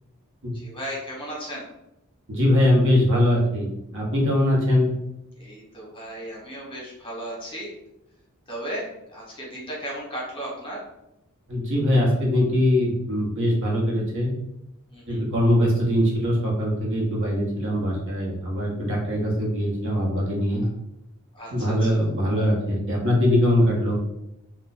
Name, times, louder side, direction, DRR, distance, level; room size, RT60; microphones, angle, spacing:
voice 1, 0.5-1.7 5.4-7.7 8.5-10.8 14.9-15.2 21.3-22.1, equal, 25° left, -4 dB, 0.9 m, -35 dB
voice 2, 2.3-3.7 3.9-4.9 11.5-14.3 15.1-20.6 21.5-24.0, left 1 dB, 60° right, -3 dB, 0.9 m, -22 dB
2.4 x 2.2 x 4.0 m, 0.86 s
head